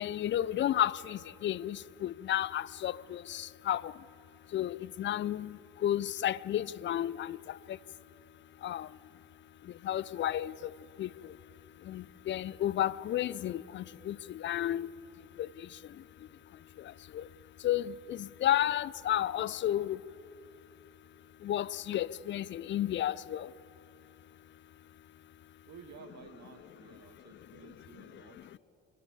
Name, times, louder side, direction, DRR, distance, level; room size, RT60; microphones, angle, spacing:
voice 1, 0.0-3.9 4.5-5.5 5.8-7.4 8.6-8.9 9.8-10.7 11.0-11.1 11.9-14.9 15.4-15.5 17.1-17.2 17.6-20.0 21.4-23.5, left 12 dB, 30° left, 0.4 m, -32 dB
voice 2, 25.7-28.6, right 5 dB, 45° right, 2.2 m, -53 dB
25.5 x 14.5 x 8.3 m
figure-of-eight pair, 50°, 38 cm